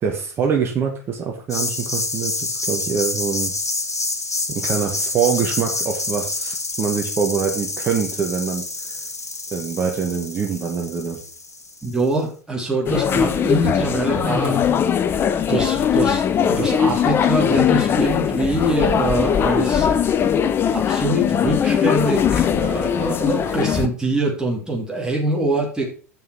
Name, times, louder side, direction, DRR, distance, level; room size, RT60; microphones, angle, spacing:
voice 1, 0.0-3.5 4.5-8.6 9.5-11.2, right 7 dB, 30° right, 2 dB, 1.4 m, -24 dB
sound 1, 1.5-12.0, left 3 dB, 85° left, 0.9 m, -27 dB
voice 2, 11.8-14.7 15.5-20.0 20.7-25.9, right 2 dB, 10° right, -3 dB, 2.9 m, -24 dB
sound 2, 12.9-23.9, left 8 dB, 30° left, 0.6 m, -20 dB
7.4 x 5.6 x 5.8 m, 0.40 s
figure-of-eight pair, 80°, 8 cm